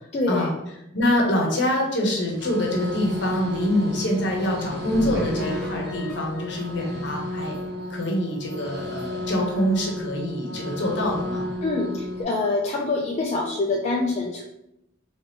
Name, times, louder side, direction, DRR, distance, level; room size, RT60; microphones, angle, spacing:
voice 1, 0.1-0.5 11.6-14.4, left 3 dB, 35° left, -2 dB, 0.3 m, -25 dB
voice 2, 0.9-7.5 7.9-11.4, left 1 dB, 60° left, 0 dB, 0.9 m, -25 dB
sound 1, 2.3-12.2, left 1 dB, 55° right, 0.8 m, -32 dB
sound 2, 4.9-7.6 8.0-8.1 8.5-8.6 9.0-9.1, left 1 dB, ahead, 0.8 m, -38 dB
3.2 x 2.9 x 3.4 m, 0.84 s
head